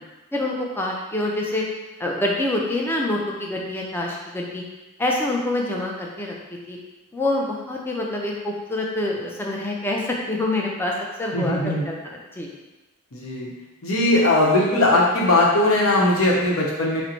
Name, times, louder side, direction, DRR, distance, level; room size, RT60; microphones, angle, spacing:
voice 1, 0.3-1.6 2.0-4.6 5.0-6.3 6.7-6.8 7.1-10.9 11.2-12.5, left 1 dB, 10° left, -2 dB, 0.4 m, -26 dB
voice 2, 11.3-11.8 13.1-13.5 13.8-17.0, left 2 dB, 85° left, -3 dB, 0.8 m, -19 dB
3.9 x 2.1 x 4.4 m, 1.1 s
head